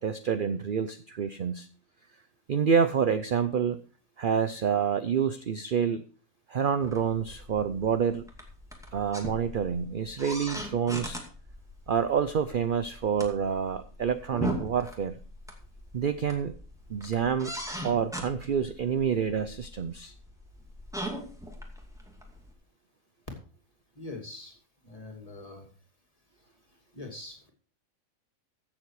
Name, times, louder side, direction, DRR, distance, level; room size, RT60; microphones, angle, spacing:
voice 1, 0.0-1.7 2.5-3.8 4.2-6.0 6.5-8.2 8.9-11.2 11.9-15.2 15.9-16.5 16.9-17.5 17.8-20.1, right 7 dB, 50° right, 12 dB, 0.7 m, -28 dB
sound 1, 6.8-22.5, right 1 dB, ahead, 2.3 m, -40 dB
voice 2, 24.0-24.6 24.8-25.7 26.9-27.5, left 2 dB, 25° left, 2 dB, 2.8 m, -43 dB
15.0 x 7.4 x 4.8 m, 0.40 s
omnidirectional pair, 1.4 m